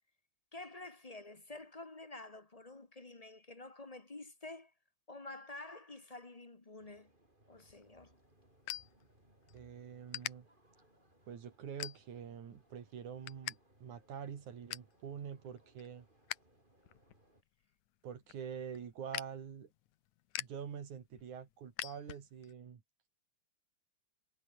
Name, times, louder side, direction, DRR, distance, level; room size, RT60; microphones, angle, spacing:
voice 1, 0.5-4.7 5.1-7.1 7.5-8.1, left 2 dB, 25° left, 0.8 m, -49 dB
sound 1, 6.8-17.4, right 1 dB, 15° right, 6.3 m, -69 dB
sound 2, 7.5-9.6 10.1-10.3 10.9-11.1 11.8-12.4 12.7-13.6 13.8-13.9 14.3-15.0 15.4-16.5 16.8-22.5, left 15 dB, 80° left, 2.3 m, -45 dB
voice 2, 9.5-10.5 11.3-16.1 18.0-19.7 20.4-22.8, right 7 dB, 80° right, 4.0 m, -46 dB
omnidirectional pair, 3.4 m